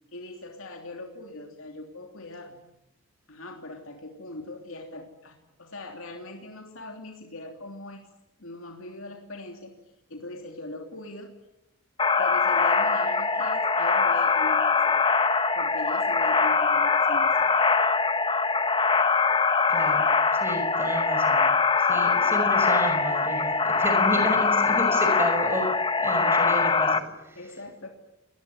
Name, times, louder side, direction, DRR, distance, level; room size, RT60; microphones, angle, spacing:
voice 1, 0.1-2.6 3.3-8.1 8.4-9.7 10.1-11.3 12.2-15.0 15.5-17.5 27.3-27.9, left 2 dB, 65° left, 3 dB, 3.1 m, -40 dB
sound 1, 12.0-27.0, left 4 dB, 25° left, 1.2 m, -22 dB
voice 2, 19.7-21.5 21.8-25.7 26.0-27.4, equal, 10° right, 5 dB, 5.9 m, -31 dB
29.0 x 20.5 x 9.6 m, 0.90 s
head